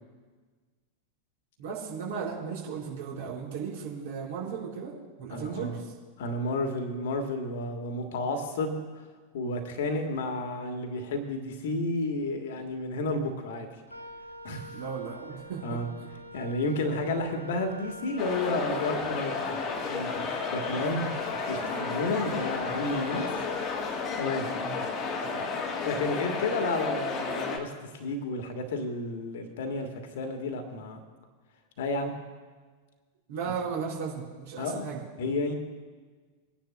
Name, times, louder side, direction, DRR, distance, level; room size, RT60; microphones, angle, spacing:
voice 1, 1.6-4.9 5.2-5.9 14.7-16.1 24.6-24.9 25.2-25.6 33.3-35.0, right 6 dB, 55° right, -3 dB, 4.4 m, -36 dB
voice 2, 5.3-5.8 6.2-8.8 9.3-13.7 14.4-14.7 15.6-15.9 16.3-23.3 24.2-24.5 25.8-29.9 30.1-31.0 31.8-32.1 33.4-33.5 34.6-34.9 35.2-35.5, left 2 dB, 55° left, 5 dB, 1.5 m, -31 dB
Wind instrument woodwind instrument, 13.9-24.3, equal, 90° right, 0.7 m, -45 dB
sound 1, 18.2-27.6, left 4 dB, 35° left, 1.3 m, -32 dB
25.0 x 10.0 x 2.2 m, 1.5 s
figure-of-eight pair, 90°, 0 cm